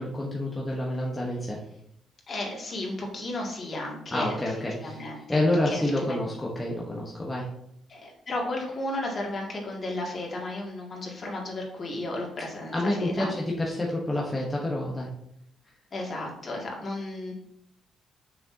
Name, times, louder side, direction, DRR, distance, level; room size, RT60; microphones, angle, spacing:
voice 1, 0.0-1.6 4.1-5.0 5.3-7.5 12.7-15.1, left 1 dB, 15° left, -3 dB, 1.2 m, -28 dB
voice 2, 2.3-5.4 5.7-6.2 7.9-13.3 15.9-17.3, left 1 dB, 40° left, -2 dB, 2.4 m, -34 dB
6.7 x 6.3 x 2.8 m, 0.75 s
cardioid pair, 90°, 0 cm